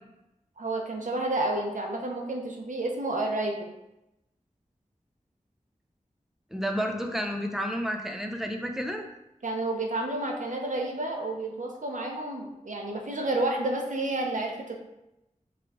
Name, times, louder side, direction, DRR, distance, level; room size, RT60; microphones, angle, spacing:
voice 1, 0.6-3.7 9.4-14.8, right 2 dB, 70° right, 1 dB, 0.7 m, -30 dB
voice 2, 6.5-9.0, equal, 5° right, 3 dB, 0.5 m, -31 dB
4.9 x 2.4 x 3.5 m, 0.91 s
wide cardioid pair, 60°, 13 cm